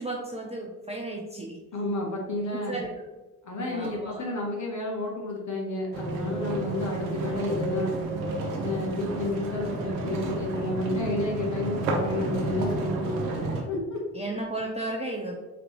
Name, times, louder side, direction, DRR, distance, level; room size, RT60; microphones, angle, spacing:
voice 1, 0.0-1.6 2.7-2.9 3.7-4.3 14.1-15.3, right 2 dB, 15° right, -1 dB, 0.5 m, -34 dB
voice 2, 1.7-2.7 3.4-7.9 8.6-13.1 13.7-14.0, left 1 dB, 35° left, -2 dB, 1.4 m, -30 dB
sound 1, 5.9-13.6, right 2 dB, 70° right, 0.8 m, -31 dB
3.7 x 3.1 x 3.0 m, 1.2 s
figure-of-eight pair, 45°, 47 cm